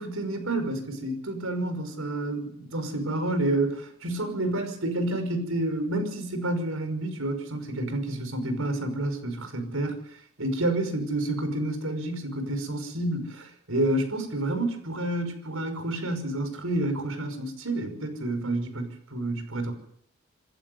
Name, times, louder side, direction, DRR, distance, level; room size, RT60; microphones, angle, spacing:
voice 1, 0.0-10.0 10.4-19.7, right 1 dB, 80° right, 7 dB, 5.6 m, -29 dB
27.0 x 12.0 x 8.0 m, 0.69 s
head